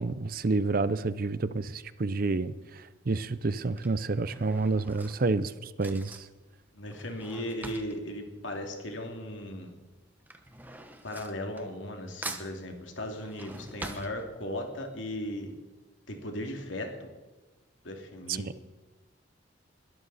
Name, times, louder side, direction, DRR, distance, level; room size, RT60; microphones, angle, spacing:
voice 1, 0.0-6.3 18.3-18.5, right 3 dB, 45° right, 0.5 m, -29 dB
Drawer open or close / Cutlery silverware, 2.2-2.6 3.4-9.3 9.6-12.0 12.2-14.7 15.2-15.3 15.5-15.6, right 2 dB, 10° right, 1.1 m, -45 dB
voice 2, 6.7-9.7 11.0-15.5 16.1-17.1 17.8-18.5, left 1 dB, 75° left, 2.7 m, -37 dB
21.5 x 12.5 x 4.2 m
head